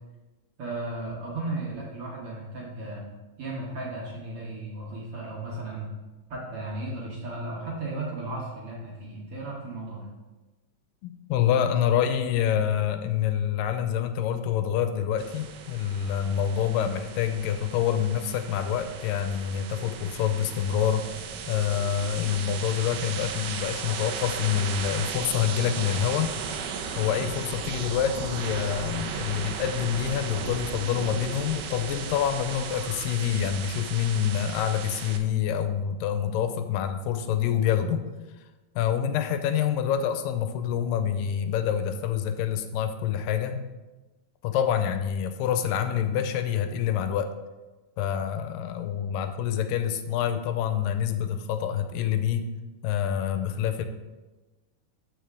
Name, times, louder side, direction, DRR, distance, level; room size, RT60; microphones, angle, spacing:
voice 1, 0.6-3.1 3.4-5.9 6.3-10.1, right 2 dB, 55° right, -4 dB, 1.7 m, -35 dB
voice 2, 11.0-21.1 21.5-26.4 27.0-38.1 38.8-43.7 44.4-47.3 48.0-52.5 52.8-53.9, left 9 dB, 85° left, 8 dB, 2.2 m, -27 dB
sound 1, 15.2-35.2, right 6 dB, 80° right, 1.5 m, -36 dB
13.5 x 4.9 x 3.6 m, 1.2 s
omnidirectional pair, 3.9 m